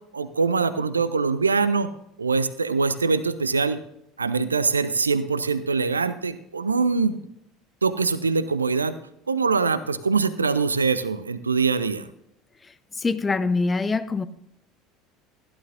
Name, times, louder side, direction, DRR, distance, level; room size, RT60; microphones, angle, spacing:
voice 1, 0.1-1.9 2.2-3.8 4.2-7.3 7.8-9.0 9.3-12.1, right 4 dB, 80° right, 0.6 m, -23 dB
voice 2, 13.0-14.3, left 3 dB, 20° left, 0.7 m, -24 dB
15.5 x 11.5 x 2.6 m
figure-of-eight pair, 70°, 0 cm